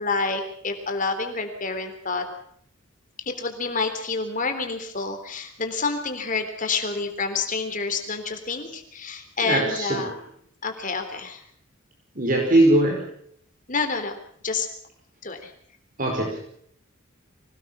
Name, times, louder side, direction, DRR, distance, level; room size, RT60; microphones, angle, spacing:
voice 1, 0.0-2.3 3.2-10.1 10.6-11.4 13.7-14.2 14.4-14.7 15.2-15.5, left 4 dB, 40° left, 6 dB, 3.6 m, -28 dB
voice 2, 9.4-10.0 12.1-13.0 16.0-16.4, right 1 dB, 40° right, 1 dB, 5.0 m, -20 dB
25.0 x 19.0 x 5.8 m, 0.65 s
head